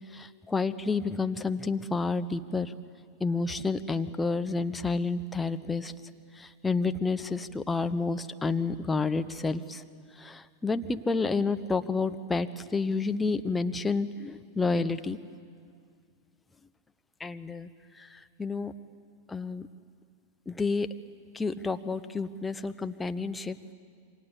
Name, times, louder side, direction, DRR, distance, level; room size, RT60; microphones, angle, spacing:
voice 1, 0.1-2.7 3.2-5.9 6.4-9.8 10.2-15.2 17.2-17.7 18.0-18.1 18.4-18.7 19.3-19.6 20.5-20.9 21.3-23.7, left 4 dB, 10° left, 10 dB, 1.0 m, -30 dB
27.5 x 24.5 x 8.4 m, 2.2 s
figure-of-eight pair, 90°, 0 cm